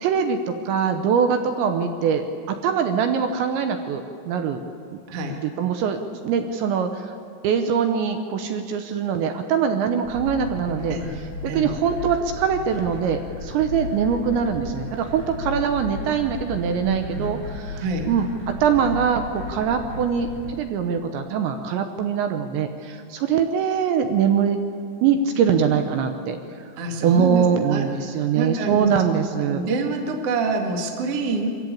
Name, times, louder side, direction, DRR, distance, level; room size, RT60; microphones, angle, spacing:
voice 1, 0.0-4.6 4.9-5.0 5.4-7.1 7.4-11.0 11.4-24.6 25.0-26.4 27.0-29.6, right 7 dB, 75° right, 6 dB, 2.9 m, -23 dB
voice 2, 5.1-5.4 10.9-11.1 11.5-11.7 16.8-17.3 17.8-18.1 26.8-27.9 28.2-28.9 29.4-31.5, right 3 dB, 55° right, 2 dB, 1.7 m, -26 dB
sound 1, 10.0-20.5, left 3 dB, 35° right, 5.7 m, -35 dB
24.0 x 14.5 x 8.6 m, 2.4 s
omnidirectional pair, 5.7 m